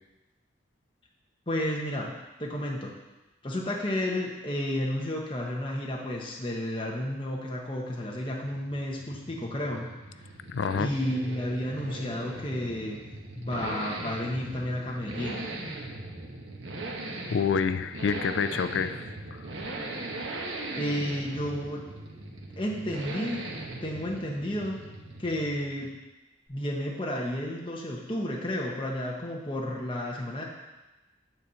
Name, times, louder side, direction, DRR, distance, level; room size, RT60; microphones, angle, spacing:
voice 1, 1.5-2.1 2.4-3.0 3.4-10.3 10.7-13.0 13.3-15.5 20.7-21.8 22.6-23.4 23.8-24.8 25.2-25.9 26.5-30.4, left 1 dB, 25° left, -2 dB, 1.1 m, -32 dB
sound 1, 8.1-26.0, right 2 dB, 80° right, 1.2 m, -39 dB
voice 2, 10.5-10.9 17.3-19.4, left 6 dB, 70° left, 11 dB, 0.4 m, -28 dB
9.4 x 4.4 x 6.9 m, 1.1 s
head